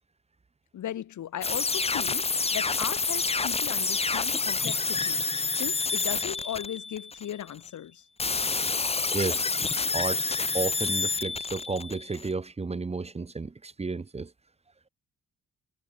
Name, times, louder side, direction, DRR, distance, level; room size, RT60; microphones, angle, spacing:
voice 1, 0.7-5.3 5.6-8.0, left 11 dB, 60° left, 1.7 m, -37 dB
sound 1, 1.4-7.5 8.2-12.3, left 4 dB, 20° left, 1.1 m, -28 dB
voice 2, 9.1-9.6 9.9-10.2 10.5-14.3, right 3 dB, 20° right, 1.3 m, -32 dB
cardioid pair, 140°, 33 cm